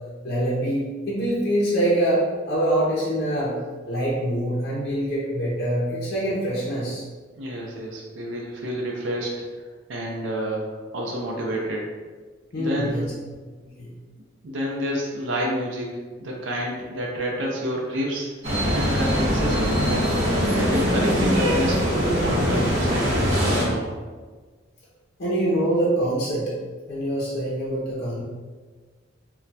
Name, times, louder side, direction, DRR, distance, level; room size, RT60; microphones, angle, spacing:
voice 1, 0.2-3.6 3.9-7.0 12.5-13.1 13.7-13.9 25.2-26.5 26.9-28.2, right 1 dB, 55° left, -6 dB, 0.6 m, -24 dB
voice 2, 7.4-9.3 9.9-10.6 10.9-11.9 12.6-13.1 14.4-20.1 20.5-24.0, equal, 75° right, -2 dB, 0.5 m, -29 dB
sound 1, 18.4-23.7, equal, 35° right, 0.8 m, -22 dB
2.2 x 2.2 x 3.9 m, 1.4 s
head